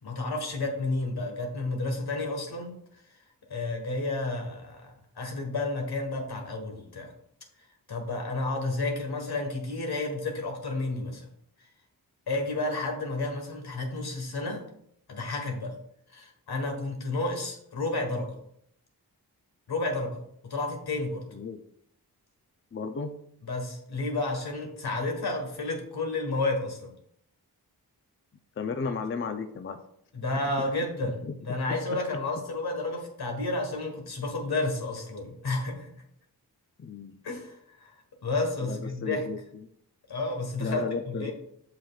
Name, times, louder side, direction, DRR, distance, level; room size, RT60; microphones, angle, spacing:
voice 1, 0.0-2.8 3.5-7.1 7.9-11.3 12.3-14.7 15.1-15.8 16.1-18.4 19.7-21.2 23.5-26.9 30.1-35.9 37.2-39.3 40.1-41.3, left 2 dB, 80° left, 2 dB, 1.5 m, -31 dB
voice 2, 22.7-23.1 28.6-29.8 31.0-31.3 31.7-32.0 36.8-37.2 38.6-39.4 40.6-41.3, left 5 dB, 35° left, 7 dB, 0.5 m, -34 dB
7.5 x 5.9 x 2.4 m, 0.72 s
wide cardioid pair, 65°, 38 cm